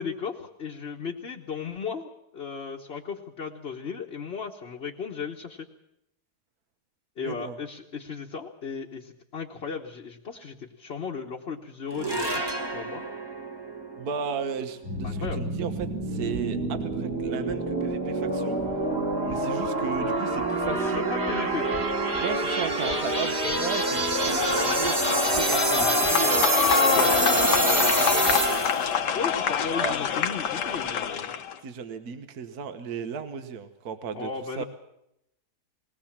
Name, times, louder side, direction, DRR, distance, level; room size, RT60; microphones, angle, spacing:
voice 1, 0.0-5.7 7.2-12.4 12.7-13.0 15.0-15.5 20.9-21.6 27.0-27.2 29.1-31.3 34.1-34.6, left 5 dB, 40° left, 0 dB, 1.3 m, -35 dB
voice 2, 7.2-7.6 14.0-18.6 19.2-21.1 22.2-26.5 26.9-28.6 29.8-30.0 31.6-34.3 34.6-34.7, right 6 dB, 65° right, 9 dB, 1.6 m, -35 dB
sound 1, 11.9-18.4, right 2 dB, 15° right, 1.2 m, -37 dB
sound 2, 14.8-28.9, right 2 dB, 40° right, 2.4 m, -26 dB
sound 3, 24.2-31.5, left 7 dB, 80° left, 1.6 m, -26 dB
20.5 x 19.0 x 7.3 m, 0.82 s
omnidirectional pair, 1.8 m